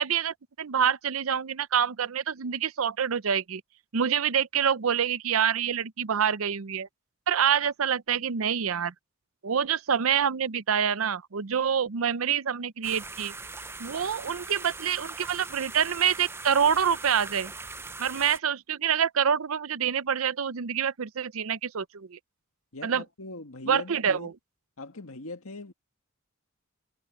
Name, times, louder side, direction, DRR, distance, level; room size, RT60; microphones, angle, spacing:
voice 1, 0.0-3.6 3.9-6.9 7.3-8.9 9.4-13.3 13.8-17.5 18.0-22.2 22.8-23.0 23.7-24.3, right 8 dB, 80° right, 0.6 m, -26 dB
sound 1, 12.8-18.4, right 3 dB, 10° right, 0.5 m, -41 dB
voice 2, 22.7-24.3 24.8-25.7, left 2 dB, 85° left, 1.9 m, -40 dB
head